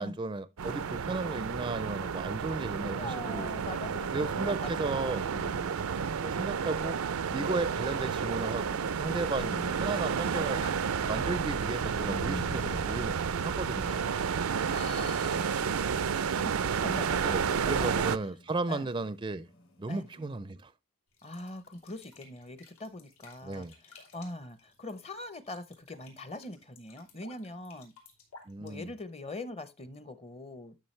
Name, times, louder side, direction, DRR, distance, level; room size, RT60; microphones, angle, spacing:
voice 1, 0.0-3.5 4.1-5.2 6.2-7.0 7.3-10.6 11.1-13.1 13.4-14.0 17.2-19.5 19.8-20.7 23.4-23.7 28.5-28.9, right 3 dB, 20° right, 0.4 m, -35 dB
sound 1, 0.6-18.2, right 6 dB, 90° right, 0.5 m, -31 dB
voice 2, 3.0-4.7 5.3-5.8 7.3-7.5 9.3-9.9 13.8-16.5 16.8-17.9 18.2-18.3 18.7-18.9 19.9-20.1 21.2-27.9 28.6-30.8, left 2 dB, 30° left, 0.7 m, -43 dB
sound 2, 3.9-6.6 7.5-20.2, left 1 dB, 70° left, 3.2 m, -49 dB
sound 3, 21.1-29.3, left 4 dB, 90° left, 3.3 m, -57 dB
11.5 x 6.1 x 3.1 m
head